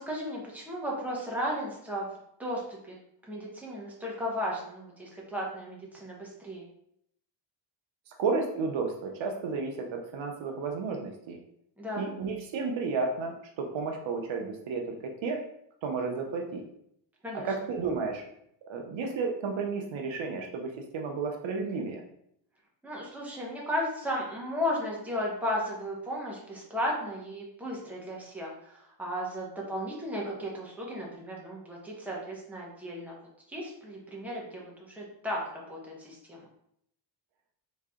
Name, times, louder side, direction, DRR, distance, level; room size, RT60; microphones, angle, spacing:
voice 1, 0.0-2.1 2.4-2.9 3.3-6.6 11.8-12.1 17.2-17.5 22.8-33.2 33.5-36.5, equal, 5° right, -4 dB, 1.1 m, -35 dB
voice 2, 8.2-11.4 12.0-15.4 15.8-16.6 17.4-18.2 18.7-22.0, right 4 dB, 65° right, 2 dB, 0.8 m, -32 dB
3.7 x 3.1 x 3.6 m, 0.72 s
cardioid pair, 115°, 48 cm